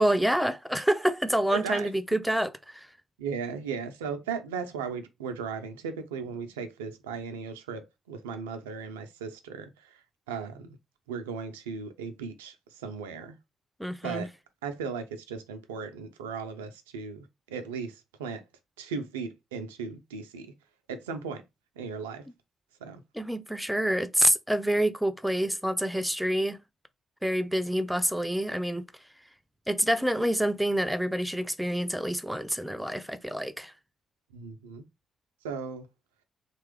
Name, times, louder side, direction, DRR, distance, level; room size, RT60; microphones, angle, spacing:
voice 1, 0.0-2.9 13.8-14.3 23.1-26.6 27.2-28.8 29.7-33.7, right 1 dB, 5° right, 0.4 m, -27 dB
voice 2, 1.5-1.9 3.2-9.7 10.3-10.8 11.1-13.4 14.0-14.3 14.6-18.4 18.8-20.5 20.9-21.4 21.8-22.3 22.8-23.0 34.3-34.8 35.4-35.9, right 6 dB, 75° right, 0.4 m, -36 dB
3.0 x 2.3 x 3.2 m
figure-of-eight pair, 40°, 0 cm